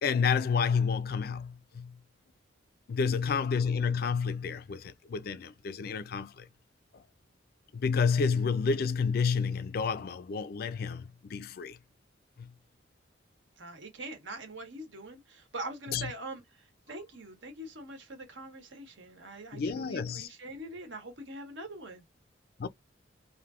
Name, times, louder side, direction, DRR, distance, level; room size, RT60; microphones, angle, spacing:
voice 1, 0.0-2.0 2.9-6.4 7.7-11.8 12.4-12.5 15.9-16.1 19.5-20.3 22.6-22.7, left 5 dB, 50° left, 0.4 m, -30 dB
voice 2, 13.6-22.0, right 2 dB, 80° right, 1.2 m, -43 dB
3.4 x 2.6 x 2.4 m
head